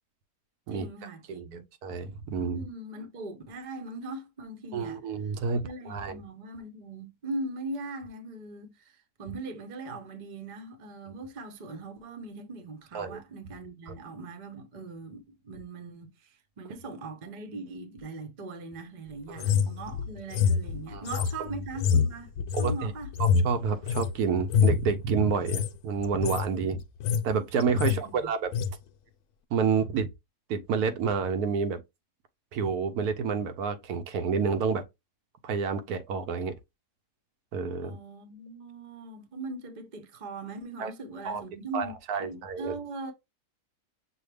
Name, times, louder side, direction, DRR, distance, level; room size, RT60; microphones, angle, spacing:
voice 1, 0.7-1.7 2.5-5.0 5.5-22.3 22.6-23.1 27.8-28.3 37.8-43.1, right 2 dB, 40° right, 0.7 m, -40 dB
voice 2, 1.3-2.7 4.7-6.2 12.9-13.2 13.9-14.0 19.3-19.5 20.9-21.0 21.4-21.5 22.5-22.9 23.2-26.8 27.2-28.5 29.5-30.1 30.5-31.8 32.5-34.8 35.4-36.5 37.5-38.0 40.8-40.9 41.2-41.4 41.7-42.8, right 5 dB, 75° right, 1.1 m, -29 dB
sound 1, 19.4-24.1 24.4-24.9 25.4-25.7 26.0-26.5 26.8-27.3 27.6-28.0 28.5-28.7, left 7 dB, 75° left, 1.1 m, -26 dB
6.2 x 2.3 x 3.3 m
omnidirectional pair, 1.7 m